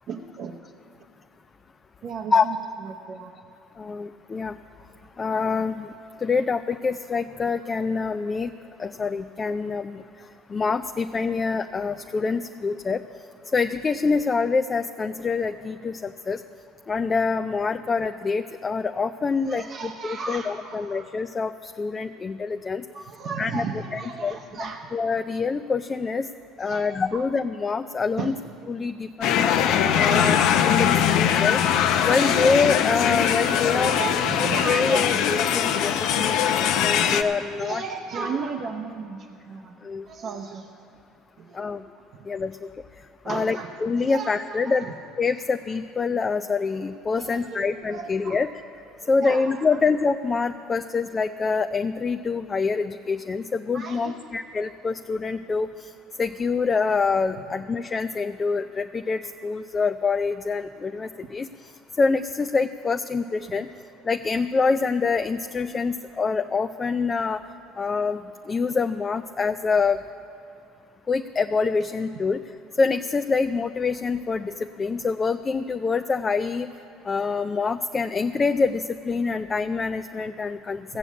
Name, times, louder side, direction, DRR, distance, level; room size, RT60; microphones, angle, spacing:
voice 1, 0.1-0.6 2.0-2.6 2.8-3.3 19.4-21.1 22.9-24.9 26.6-27.2 28.2-28.4 30.1-30.5 32.2-32.3 33.7-35.2 37.0-37.1 37.6-39.8 40.1-40.7 41.4-41.9 43.2-43.7 44.0-45.0 47.2-48.4 49.0-49.8 53.7-54.2 61.2-61.3, right 5 dB, 50° right, 1 dB, 0.8 m, -34 dB
voice 2, 3.8-4.5 5.2-5.9 6.2-8.5 8.8-10.0 10.5-13.0 13.5-16.4 16.9-22.8 23.4-23.6 23.9-24.4 24.9-26.3 26.6-28.3 28.7-29.5 30.0-30.4 30.7-31.6 32.0-33.9 34.6-35.9 36.2-37.8 39.8-40.1 41.5-41.8 42.3-42.5 43.3-44.9 45.2-48.5 49.1-55.9 56.2-61.5 62.0-63.7 64.0-67.4 67.8-68.2 68.5-70.0 71.1-72.4 72.8-76.7 77.1-81.0, left 4 dB, 25° left, 8 dB, 0.4 m, -25 dB
sound 1, 29.2-37.2, left 9 dB, 70° left, 0.7 m, -21 dB
15.5 x 7.0 x 8.2 m, 2.7 s
supercardioid pair, 95°, 0 cm